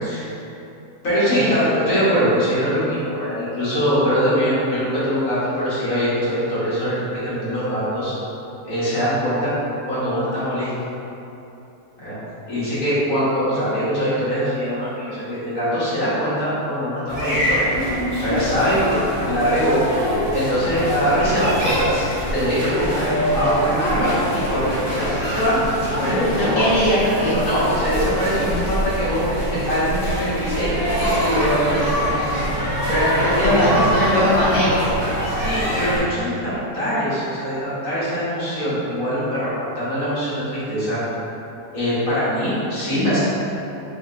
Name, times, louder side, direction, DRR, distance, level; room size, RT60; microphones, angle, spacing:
voice 1, 1.0-8.1 8.6-9.5 9.9-10.7 12.0-12.2 12.5-17.9 18.2-19.8 20.3-22.1 22.3-24.1 24.5-26.6 27.4-30.7 31.2-32.1 32.9-33.7 35.2-41.0 41.7-43.2, equal, 60° left, -11 dB, 1.8 m, -22 dB
sound 1, 17.1-36.0, equal, 5° right, 1.2 m, -24 dB
voice 2, 26.0-27.4 28.3-28.5 33.2-35.0, equal, 35° left, -10 dB, 0.7 m, -21 dB
4.8 x 2.7 x 2.6 m, 2.9 s
omnidirectional pair, 1.7 m